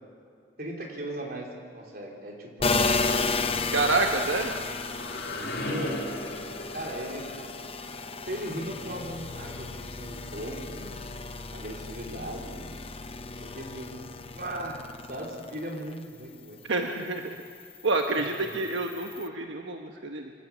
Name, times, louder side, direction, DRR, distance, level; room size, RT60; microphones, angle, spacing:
voice 1, 0.6-2.7 5.5-6.1 6.7-7.3 8.2-11.0 11.5-12.7 13.4-14.0 14.3-14.8 15.1-16.8 18.1-18.2, right 1 dB, 50° right, -1 dB, 4.2 m, -37 dB
sound 1, 2.6-16.0 16.4-19.3, left 3 dB, 30° left, 0.9 m, -33 dB
voice 2, 3.7-4.5 16.7-17.4 17.8-20.3, right 3 dB, 90° right, 3 dB, 1.3 m, -28 dB
sound 2, 4.4-10.0, left 1 dB, 65° left, 4.0 m, -38 dB
26.0 x 13.0 x 8.8 m, 2.3 s
head